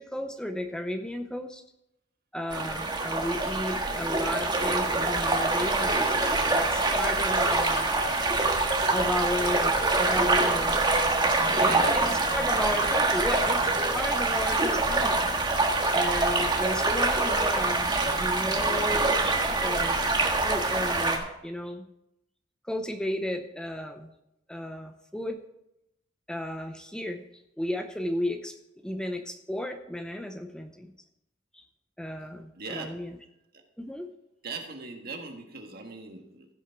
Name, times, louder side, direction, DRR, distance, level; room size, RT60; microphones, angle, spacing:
voice 1, 0.0-1.6 2.3-7.9 8.9-10.8 11.6-13.7 13.9-15.3 15.9-20.0 20.4-21.8 22.6-24.1 24.5-25.4 26.3-27.2 27.6-28.6 28.8-30.9 31.5-31.6 32.0-33.2 33.8-34.1, left 1 dB, 5° left, 6 dB, 0.6 m, -34 dB
sound 1, 2.5-21.2, right 2 dB, 25° right, 1.5 m, -25 dB
voice 2, 11.5-11.9 32.5-32.9 34.4-36.5, right 4 dB, 55° right, 4 dB, 1.6 m, -38 dB
15.5 x 6.3 x 4.6 m, 0.84 s
head